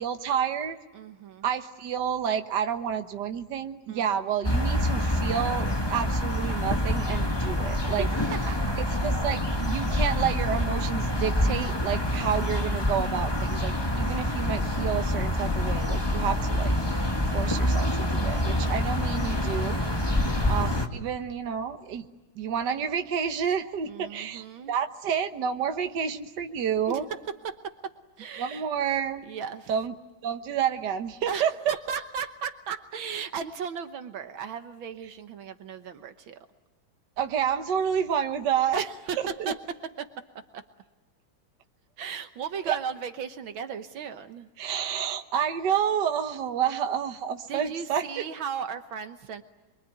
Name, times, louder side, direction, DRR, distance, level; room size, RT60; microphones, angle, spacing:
voice 1, 0.0-0.8 1.4-8.0 8.8-16.7 17.3-19.8 20.5-22.1 22.4-27.1 28.4-29.3 29.7-29.9 30.2-31.5 37.2-38.8 39.2-39.5 42.7-42.8 44.6-48.2, right 8 dB, 60° right, 6 dB, 1.8 m, -29 dB
voice 2, 0.9-1.5 3.9-4.1 8.0-8.8 20.0-20.4 23.9-24.7 26.9-27.2 27.4-27.9 28.2-28.7 29.2-29.7 31.3-36.4 38.7-40.1 40.5-40.6 42.0-44.5 47.5-49.4, right 7 dB, 75° right, 8 dB, 1.8 m, -36 dB
sound 1, 4.4-20.9, left 1 dB, 15° left, 1.6 m, -26 dB
Bowed string instrument, 14.1-18.4, left 6 dB, 90° left, 5.5 m, -50 dB
27.0 x 23.5 x 9.3 m, 1.1 s
omnidirectional pair, 2.2 m